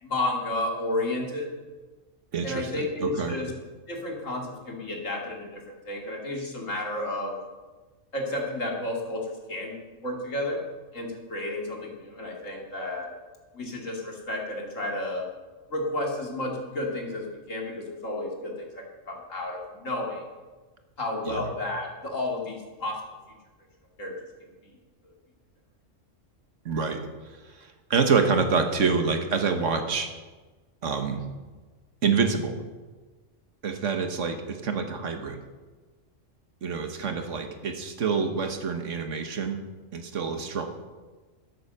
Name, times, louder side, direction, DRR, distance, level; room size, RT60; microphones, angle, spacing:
voice 1, 0.0-1.5 2.4-3.5 3.9-7.4 8.1-10.6 10.9-13.1 13.5-15.3 15.7-20.2 21.0-23.0 24.0-24.1, left 1 dB, 85° left, 0 dB, 2.8 m, -32 dB
voice 2, 2.3-3.3 21.2-21.5 26.6-27.0 27.5-30.1 30.8-31.2 32.0-32.6 33.6-35.4 36.6-39.6 39.9-40.7, right 5 dB, 75° right, 6 dB, 1.7 m, -27 dB
13.0 x 8.8 x 6.7 m, 1.3 s
omnidirectional pair, 1.3 m